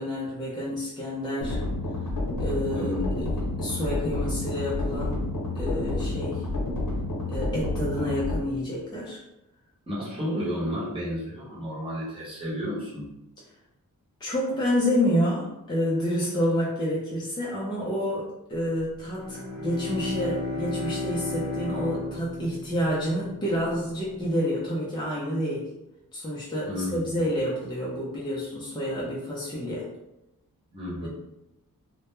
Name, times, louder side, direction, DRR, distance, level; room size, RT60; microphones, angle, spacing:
voice 1, 0.0-1.6 2.4-3.3 3.6-5.2 5.5-6.4 7.3-9.2 14.2-25.7 26.1-29.9 31.0-31.1, equal, 15° left, -6 dB, 0.4 m, -29 dB
sound 1, 1.4-8.4, left 2 dB, 75° left, 0.8 m, -29 dB
voice 2, 2.7-3.3 9.9-13.1 26.7-27.2 30.7-31.1, equal, 15° right, -8 dB, 0.8 m, -32 dB
Bowed string instrument, 19.0-23.6, left 2 dB, 55° right, 0.8 m, -33 dB
2.2 x 2.1 x 2.9 m, 0.92 s
wide cardioid pair, 125°, 34 cm